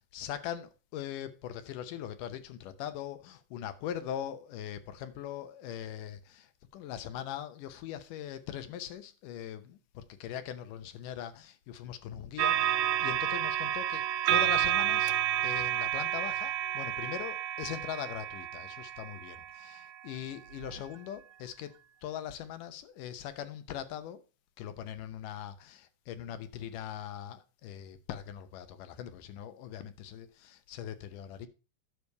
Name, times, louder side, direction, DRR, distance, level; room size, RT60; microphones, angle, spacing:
voice 1, 0.1-6.5 6.7-14.0 14.3-15.1 15.4-21.7 22.0-24.2 24.6-31.5, left 10 dB, 80° left, 2.5 m, -41 dB
sound 1, 12.4-19.9 20.6-20.8, right 12 dB, 80° right, 2.2 m, -30 dB
10.0 x 6.9 x 4.6 m
omnidirectional pair, 3.8 m